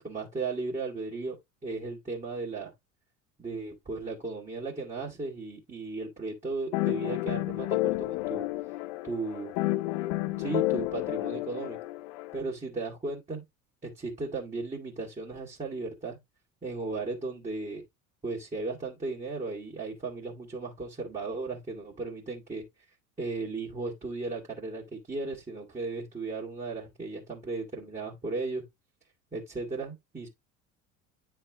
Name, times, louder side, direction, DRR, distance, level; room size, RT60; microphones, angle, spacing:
voice 1, 0.0-1.4 1.6-2.7 3.4-8.5 9.0-9.5 10.4-11.8 12.3-13.4 13.8-16.2 16.6-17.8 18.2-22.6 23.2-28.6 29.3-30.3, right 3 dB, 15° right, 1.9 m, -35 dB
sound 1, 6.7-12.4, left 19 dB, 55° left, 0.6 m, -31 dB
9.7 x 3.4 x 3.5 m
figure-of-eight pair, 70°, 44 cm